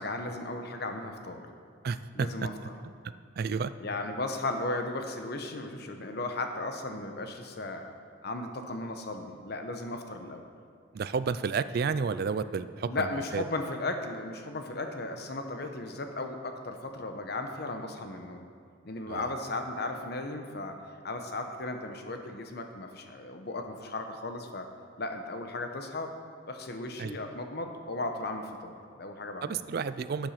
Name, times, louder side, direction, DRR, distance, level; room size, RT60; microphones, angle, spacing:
voice 1, 0.0-1.5 2.1-2.7 3.8-7.9 8.2-10.5 12.9-18.5 18.8-20.7 21.0-24.7 25.0-26.1 26.5-29.6, left 2 dB, 60° left, 5 dB, 1.0 m, -36 dB
voice 2, 1.8-2.5 3.0-3.7 10.9-13.4 19.1-19.3 27.0-27.2 29.4-30.3, right 5 dB, 55° right, 14 dB, 0.4 m, -31 dB
12.5 x 7.3 x 5.8 m, 2.2 s
head